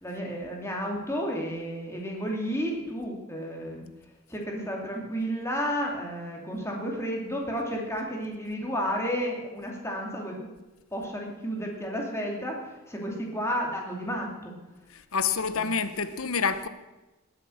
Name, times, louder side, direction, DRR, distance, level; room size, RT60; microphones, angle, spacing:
voice 1, 0.0-3.8 4.3-10.5 10.9-14.5 15.5-15.7, equal, 10° left, 2.7 m, -32 dB
voice 2, 15.1-16.7, left 5 dB, 70° left, 0.9 m, -27 dB
19.5 x 7.7 x 6.4 m
head